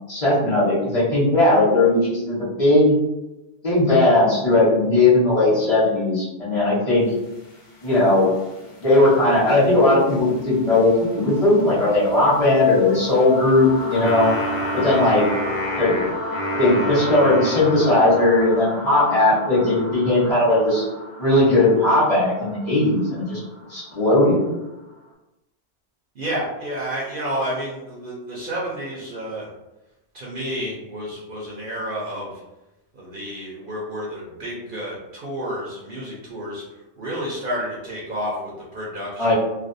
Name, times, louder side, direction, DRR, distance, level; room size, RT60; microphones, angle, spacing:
voice 1, 0.1-3.0 3.6-7.1 7.8-8.3 8.8-14.3 14.7-15.2 15.8-15.9 16.6-20.8 21.2-23.4 23.7-24.4 39.2-39.3, left 2 dB, 35° left, -9 dB, 0.9 m, -18 dB
sound 1, 7.1-24.9, left 1 dB, 65° left, 0.8 m, -34 dB
Wind instrument woodwind instrument, 14.0-18.4, equal, 90° left, 0.9 m, -29 dB
voice 2, 26.2-29.5 30.1-32.3 32.9-36.6 37.0-39.3, equal, 55° right, -5 dB, 0.7 m, -30 dB
2.4 x 2.2 x 2.5 m, 1.0 s
omnidirectional pair, 1.2 m